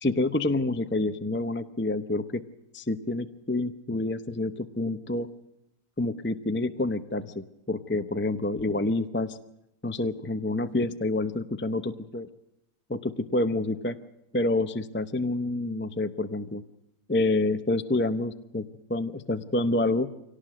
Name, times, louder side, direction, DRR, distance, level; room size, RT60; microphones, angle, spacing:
voice 1, 0.0-2.4 2.7-5.3 6.0-9.4 9.8-12.3 12.9-14.0 14.3-16.6 17.1-20.1, left 2 dB, 15° left, 10 dB, 0.5 m, -28 dB
25.5 x 18.0 x 7.7 m, 0.86 s
omnidirectional pair, 1.7 m